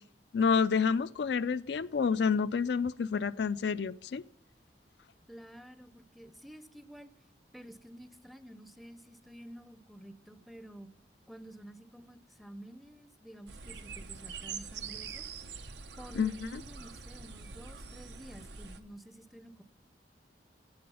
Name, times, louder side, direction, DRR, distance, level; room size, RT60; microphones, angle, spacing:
voice 1, 0.3-4.2 16.1-16.6, left 5 dB, 70° left, 0.4 m, -29 dB
voice 2, 5.3-7.1 7.5-10.9 11.3-15.3 16.0-19.6, equal, ahead, 0.6 m, -50 dB
sound 1, 13.5-18.8, right 5 dB, 75° right, 1.0 m, -44 dB
15.0 x 8.5 x 5.5 m
head